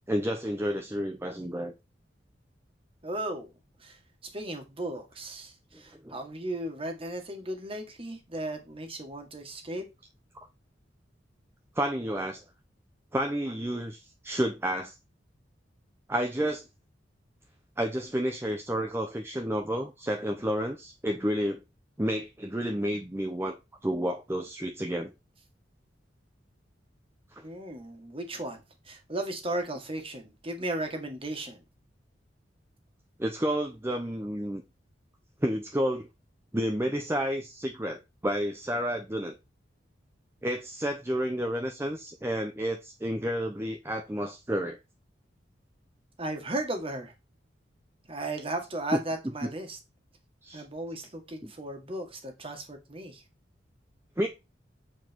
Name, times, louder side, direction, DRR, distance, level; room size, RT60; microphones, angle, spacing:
voice 1, 0.1-1.7 6.0-6.2 11.7-12.4 13.1-14.9 16.1-16.6 17.8-21.6 22.0-23.6 23.8-25.1 27.3-27.4 33.2-34.6 35.4-36.1 36.5-39.4 40.4-44.8 50.4-50.6 51.4-51.5 54.2-54.3, equal, 15° right, 0.7 m, -30 dB
voice 2, 3.0-3.5 3.8-4.0 4.3-9.9 27.4-31.6 46.2-47.1 48.1-49.8 50.5-53.2, right 1 dB, 30° right, 1.8 m, -36 dB
8.1 x 4.6 x 4.5 m
head